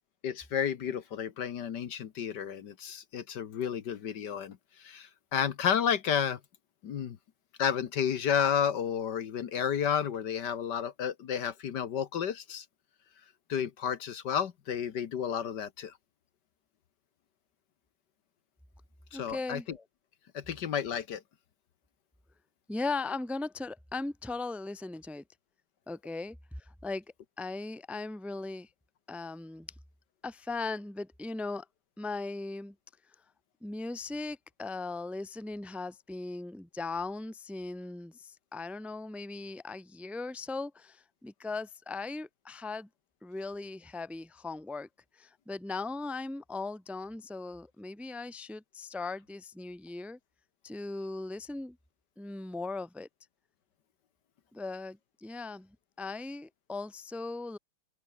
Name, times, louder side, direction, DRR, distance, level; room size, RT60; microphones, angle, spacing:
voice 1, 0.2-6.4 6.8-7.2 7.6-12.7 13.5-15.9 19.1-19.8 20.3-21.2, left 8 dB, 65° left, 1.7 m, -31 dB
voice 2, 19.1-19.8 22.7-25.2 25.9-27.0 27.4-28.7 29.1-29.7 30.2-31.7 32.0-32.7 33.6-42.9 43.2-44.9 45.1-50.2 50.6-51.8 52.2-53.1 54.5-55.7 56.0-57.6, left 3 dB, ahead, 1.1 m, -38 dB
open air
omnidirectional pair, 2.1 m